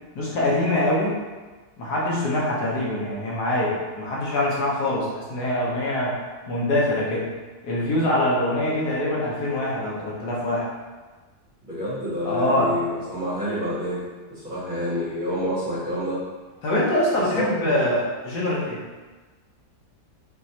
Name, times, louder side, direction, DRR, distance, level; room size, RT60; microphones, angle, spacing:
voice 1, 0.1-1.2 1.8-6.1 6.5-7.3 7.6-10.7 12.2-12.7 16.6-18.8, left 1 dB, 80° left, -5 dB, 1.5 m, -24 dB
voice 2, 11.6-16.2 17.3-17.9, left 1 dB, 35° right, -9 dB, 1.2 m, -28 dB
4.5 x 3.1 x 2.8 m, 1.3 s
omnidirectional pair, 1.7 m